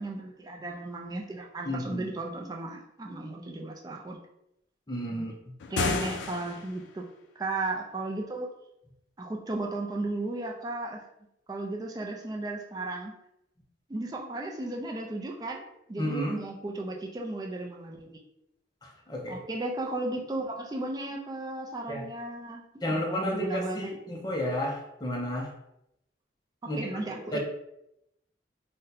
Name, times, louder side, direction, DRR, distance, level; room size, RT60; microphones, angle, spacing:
voice 1, 0.0-4.2 5.1-5.3 5.7-7.1 7.4-8.5 9.2-11.0 11.5-13.1 13.9-15.6 15.9-18.2 19.3-23.9 26.6-27.4, right 2 dB, 20° right, 0 dB, 0.4 m, -35 dB
voice 2, 1.6-2.0 4.9-5.3 16.0-16.4 18.8-19.4 21.9-22.0 22.8-25.5 26.6-27.0 27.3-27.4, equal, 20° left, -1 dB, 0.6 m, -32 dB
sound 1, 5.6-6.9, left 4 dB, 80° left, 0.3 m, -32 dB
2.7 x 2.2 x 3.9 m, 0.82 s
head